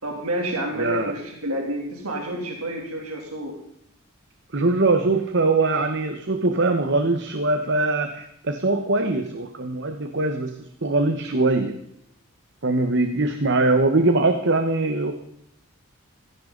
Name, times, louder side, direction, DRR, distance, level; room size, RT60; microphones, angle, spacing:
voice 1, 0.0-3.6, right 1 dB, 85° right, 1 dB, 3.1 m, -29 dB
voice 2, 0.8-1.1 4.5-11.7 12.6-15.1, right 2 dB, 55° right, 7 dB, 1.3 m, -22 dB
17.0 x 16.0 x 4.0 m, 0.73 s
head